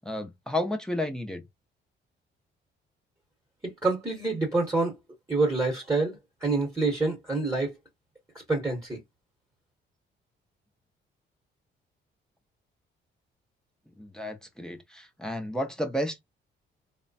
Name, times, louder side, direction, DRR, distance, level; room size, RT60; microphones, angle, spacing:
voice 1, 0.0-1.4 14.0-16.2, left 1 dB, 5° left, 0.6 m, -32 dB
voice 2, 3.8-4.9 5.3-6.1 6.4-7.7 8.5-9.0, right 3 dB, 15° right, 1.0 m, -26 dB
3.0 x 2.1 x 2.6 m
cardioid pair, 90°, 20 cm